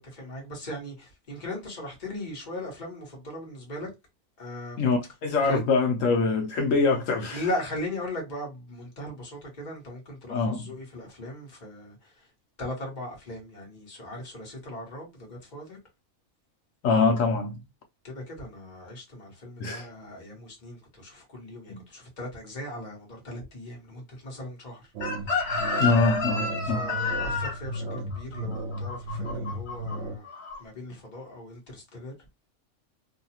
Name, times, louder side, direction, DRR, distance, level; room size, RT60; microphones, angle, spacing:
voice 1, 0.0-3.9 4.4-4.8 5.4-5.6 7.3-12.3 12.6-15.8 18.0-24.9 26.6-30.3 30.6-32.1, left 1 dB, 40° left, 1.3 m, -38 dB
voice 2, 4.8-7.4 10.3-10.6 16.8-17.6 19.6-19.9 21.7-21.8 25.8-26.9, left 4 dB, 85° left, 1.1 m, -24 dB
sound 1, 24.9-30.1, right 1 dB, 65° right, 0.9 m, -35 dB
Chicken rooster, 25.0-30.0 30.2-30.6, left 3 dB, 60° left, 1.2 m, -30 dB
2.8 x 2.3 x 2.7 m
omnidirectional pair, 1.3 m